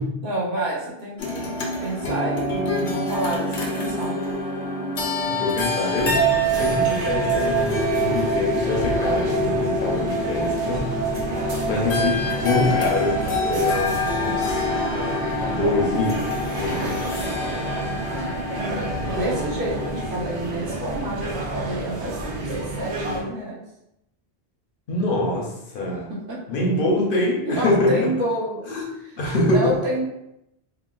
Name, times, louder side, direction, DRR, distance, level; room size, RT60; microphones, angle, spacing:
voice 1, 0.2-4.4 18.1-18.5 19.0-23.7 26.1-26.8 27.4-28.7 29.0-29.2 29.5-30.0, right 1 dB, 60° right, -4 dB, 0.8 m, -29 dB
sound 1, 1.2-20.1, equal, 90° left, 0.9 m, -26 dB
voice 2, 5.3-6.1 6.4-10.9 11.7-14.6 15.3-16.3 16.6-17.1 24.9-26.1 26.5-28.1 28.7-28.8 29.2-29.7, left 2 dB, 60° left, -2 dB, 0.7 m, -24 dB
sound 2, 5.9-23.2, right 2 dB, 90° right, 1.0 m, -30 dB
3.7 x 2.1 x 2.3 m, 0.83 s
omnidirectional pair, 1.1 m